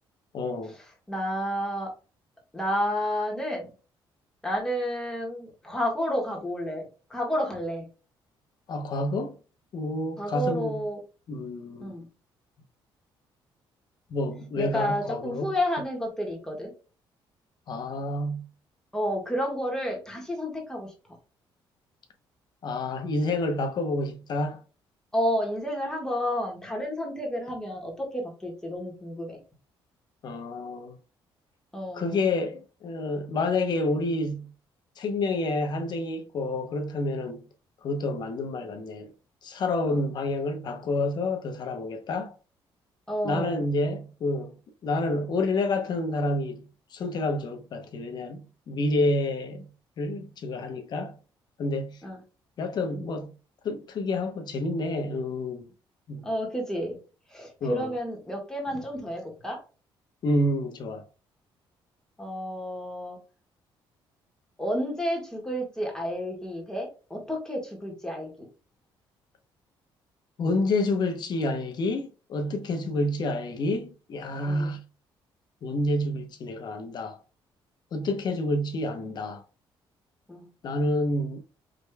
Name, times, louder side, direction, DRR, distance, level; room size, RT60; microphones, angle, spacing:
voice 1, 0.3-0.8 8.7-9.4 9.7-10.8 11.3-11.9 14.1-15.5 17.7-18.4 22.6-24.6 30.2-31.0 31.9-34.5 35.0-37.4 37.8-39.1 39.4-42.3 43.2-44.5 44.8-49.7 50.0-51.2 51.6-52.0 52.6-53.3 53.6-55.7 56.1-56.3 57.6-57.9 60.2-61.0 70.4-74.8 75.6-77.2 77.9-79.4 80.6-81.4, left 2 dB, 50° left, 0.8 m, -29 dB
voice 2, 1.1-1.9 2.5-3.7 4.4-6.8 7.1-7.9 10.2-11.0 11.8-12.1 14.5-16.7 18.9-20.9 25.1-29.4 31.7-32.2 39.9-40.1 43.1-43.6 52.0-52.2 56.2-57.0 57.3-59.6 62.2-63.2 64.6-68.5 74.5-74.7 80.3-80.5, equal, 5° left, 1.6 m, -30 dB
5.0 x 3.3 x 2.3 m
cardioid pair, 130°, 9 cm